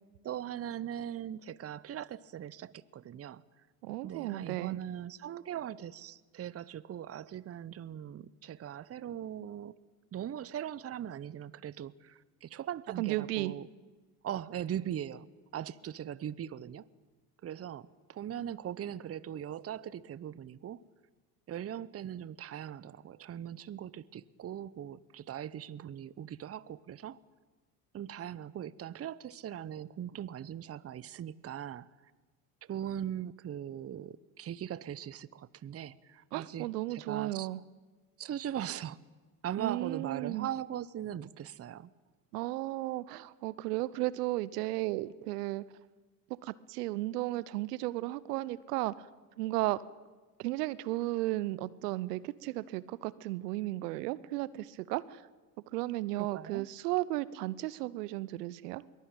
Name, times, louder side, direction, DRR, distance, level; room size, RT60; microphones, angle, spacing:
voice 1, 0.2-3.4 4.0-9.8 10.1-13.7 14.2-15.3 15.5-16.9 17.4-20.8 21.5-27.2 27.9-31.9 32.6-37.5 38.2-39.0 39.4-41.9 56.2-56.7, right 10 dB, 30° right, 19 dB, 0.8 m, -40 dB
voice 2, 3.8-4.8 13.0-13.5 36.3-37.6 39.6-40.5 42.3-45.6 46.4-49.1 49.4-49.8 50.4-55.2 55.7-58.8, right 18 dB, 75° right, 19 dB, 0.8 m, -34 dB
22.0 x 18.5 x 8.9 m, 1.3 s
hypercardioid pair, 70°, 47 cm